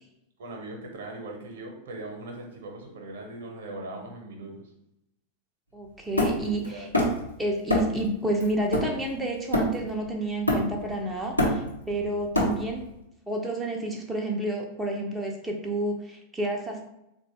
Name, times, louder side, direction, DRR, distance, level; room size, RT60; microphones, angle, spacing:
voice 1, 0.4-4.6 6.4-7.0, right 2 dB, 60° right, 2 dB, 0.8 m, -40 dB
voice 2, 5.7-6.9 7.4-12.9 13.3-16.8, right 1 dB, 5° right, 0 dB, 0.4 m, -30 dB
Hammer, 6.2-7.3 7.7-8.0 8.4-10.0 10.5-10.9 11.2-12.9, left 1 dB, 85° left, 0.8 m, -26 dB
3.9 x 2.2 x 3.1 m, 0.85 s
figure-of-eight pair, 90°, 0 cm